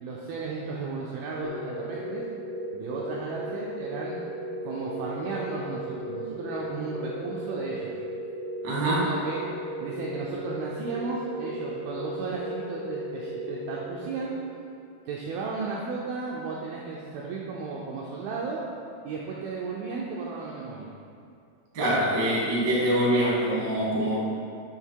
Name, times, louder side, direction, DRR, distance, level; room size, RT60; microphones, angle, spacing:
voice 1, 0.0-2.2 2.7-4.2 4.6-7.9 8.7-9.5 9.8-14.3 15.1-18.6 19.0-20.9 22.2-22.4, right 4 dB, 85° right, -3 dB, 2.1 m, -34 dB
sound 1, 1.4-14.6, right 1 dB, 80° left, 2.1 m, -36 dB
voice 2, 8.6-9.0 21.7-24.2, right 1 dB, 70° right, -6 dB, 1.0 m, -24 dB
7.8 x 3.6 x 4.5 m, 2.4 s
omnidirectional pair, 4.8 m